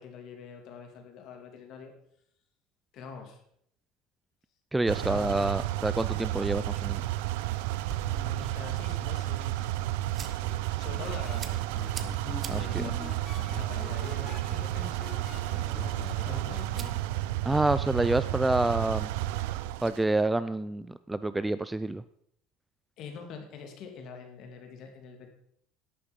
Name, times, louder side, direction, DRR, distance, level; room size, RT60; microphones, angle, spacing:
voice 1, 0.0-1.9 2.9-3.4 5.1-5.6 8.1-9.7 10.3-11.6 12.5-13.0 13.4-16.7 23.0-25.3, left 5 dB, 50° left, 4 dB, 2.5 m, -45 dB
voice 2, 4.7-7.1 12.5-12.9 17.5-19.1 19.8-22.0, right 2 dB, 5° right, 14 dB, 0.3 m, -28 dB
sound 1, 4.9-20.0, right 16 dB, 90° right, 0.5 m, -32 dB
sound 2, 7.0-20.2, right 6 dB, 25° right, 0.8 m, -49 dB
sound 3, 10.9-17.0, left 5 dB, 20° left, 0.7 m, -44 dB
11.5 x 8.6 x 5.3 m, 0.70 s
cardioid pair, 150°, 0 cm